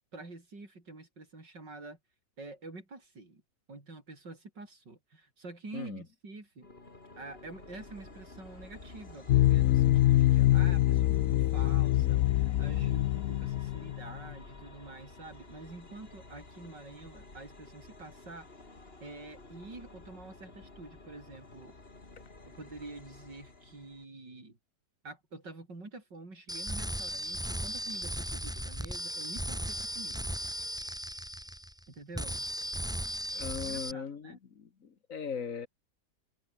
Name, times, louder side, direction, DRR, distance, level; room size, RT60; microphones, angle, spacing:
voice 1, 0.1-2.0 2.4-3.4 3.7-6.7 7.2-18.5 19.0-21.7 22.5-24.6 25.0-30.3 31.9-32.5 33.6-34.4, right 2 dB, 80° right, 6.5 m, -47 dB
sound 1, 6.6-24.0, left 3 dB, 35° left, 3.3 m, -51 dB
sound 2, 9.3-14.3, left 14 dB, 75° left, 0.7 m, -25 dB
sound 3, 26.5-31.8 32.1-33.9, equal, ahead, 2.7 m, -36 dB
voice 2, 33.3-35.7, left 6 dB, 50° left, 1.9 m, -39 dB
omnidirectional pair, 1.9 m